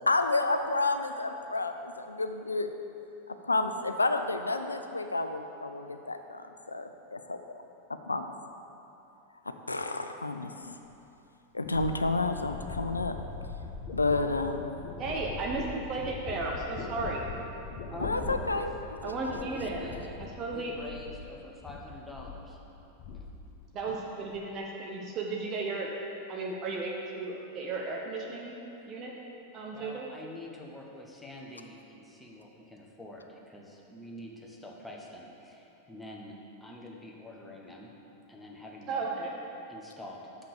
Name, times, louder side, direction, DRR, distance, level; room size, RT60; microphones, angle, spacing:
voice 1, 0.1-2.7 3.4-7.4 8.1-8.3 9.5-10.8 11.5-13.2 13.9-14.7 18.0-18.7 19.0-19.1, left 3 dB, 80° left, 7 dB, 0.4 m, -30 dB
sound 1, 10.9-11.0 11.6-21.3 21.6-22.5 22.8-23.6 23.9-24.4, left 4 dB, 45° left, 1.2 m, -41 dB
voice 2, 15.0-17.2 19.0-19.9 20.4-20.7 23.7-25.9 26.3-28.6 28.9-29.1 29.5-30.1 38.9-39.3, right 3 dB, 35° right, -1 dB, 0.9 m, -34 dB
voice 3, 17.9-18.6 19.4-20.2 20.5-22.6 29.7-36.3 36.6-37.9 38.3-39.1 39.7-40.3, left 1 dB, 5° left, -2 dB, 1.1 m, -46 dB
6.9 x 5.8 x 6.6 m, 3.0 s
figure-of-eight pair, 90°, 0 cm